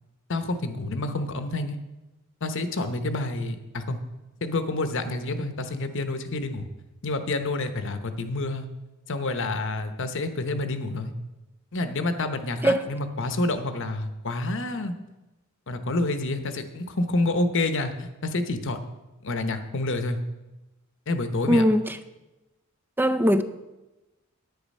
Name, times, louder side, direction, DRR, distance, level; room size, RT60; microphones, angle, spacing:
voice 1, 0.3-1.8 2.4-4.0 4.4-6.7 7.0-8.7 9.1-11.1 11.7-15.0 15.7-18.8 19.2-20.2 21.1-21.6, left 2 dB, 60° left, 0.9 m, -28 dB
voice 2, 21.5-22.0 23.0-23.4, equal, 10° right, 0.5 m, -20 dB
10.5 x 9.1 x 5.4 m
head